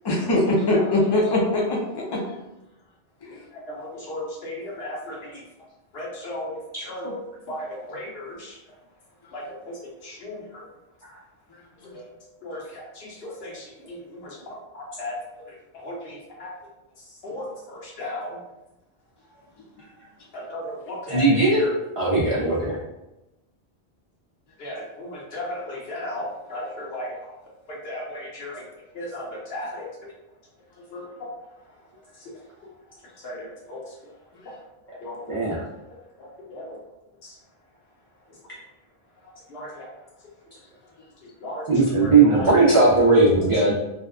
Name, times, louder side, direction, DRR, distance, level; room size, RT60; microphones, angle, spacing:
voice 1, 0.0-2.2 3.2-3.4 24.6-24.7, left 2 dB, 40° left, -1 dB, 0.3 m, -22 dB
voice 2, 3.7-5.4 5.9-7.2 7.5-8.6 9.3-9.7 10.0-10.4 11.9-12.1 12.4-14.4 14.7-15.1 15.7-16.5 17.2-18.4 20.3-21.7 24.6-27.1 27.7-28.6 28.9-29.9 30.9-31.1 33.2-33.8 35.0-35.2 36.5-36.6 39.5-39.9 41.4-41.7 42.0-42.5, left 1 dB, 75° left, -4 dB, 0.9 m, -35 dB
voice 3, 21.1-21.6 22.0-22.8 35.3-35.6 41.7-43.7, right 3 dB, 50° right, -7 dB, 0.4 m, -18 dB
2.7 x 2.1 x 2.3 m, 0.96 s
omnidirectional pair, 1.0 m